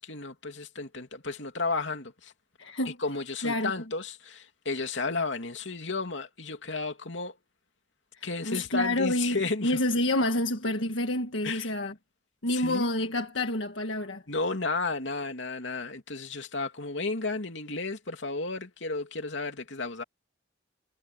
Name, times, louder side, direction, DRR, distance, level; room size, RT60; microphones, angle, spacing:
voice 1, 0.0-2.3 2.8-7.4 8.2-9.8 11.4-11.7 12.5-12.9 14.3-20.0, left 3 dB, 70° left, 2.9 m, -33 dB
voice 2, 2.6-3.0 3.4-3.7 8.2-9.4 9.6-11.9 12.4-14.2, left 1 dB, 90° left, 1.6 m, -28 dB
head